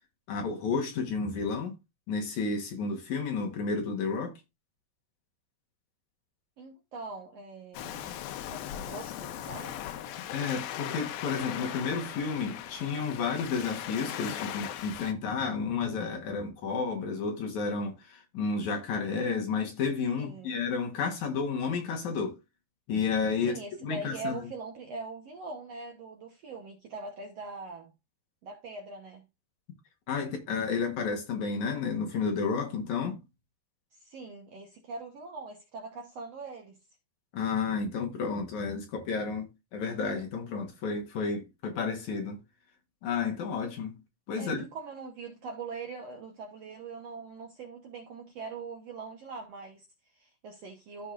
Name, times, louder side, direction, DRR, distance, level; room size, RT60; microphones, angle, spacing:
voice 1, 0.3-1.8 2.1-4.4 10.3-22.4 22.9-24.4 30.1-33.2 37.3-42.4 43.0-44.0 44.3-44.6, left 5 dB, 60° left, 2.5 m, -31 dB
voice 2, 6.6-9.8 20.2-20.6 23.4-27.9 28.4-29.3 33.9-36.8 44.4-51.1, right 3 dB, 65° right, 1.7 m, -42 dB
Waves surf, 7.7-15.1, left 11 dB, 85° left, 2.6 m, -39 dB
14.0 x 4.8 x 2.5 m
omnidirectional pair, 4.1 m